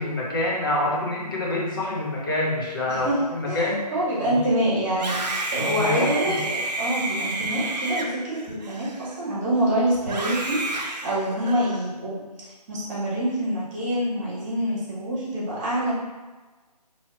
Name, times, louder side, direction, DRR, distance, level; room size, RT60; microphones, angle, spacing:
voice 1, 0.0-3.8 4.3-4.4 5.6-6.4, left 2 dB, 30° left, -4 dB, 0.8 m, -26 dB
voice 2, 2.9-5.2 5.5-12.2 12.7-15.9, right 1 dB, 20° right, -8 dB, 1.3 m, -26 dB
Screaming, 4.9-9.4 10.0-11.8, right 2 dB, 80° right, 0.7 m, -30 dB
3.0 x 2.8 x 4.1 m, 1.3 s
figure-of-eight pair, 160°, 21 cm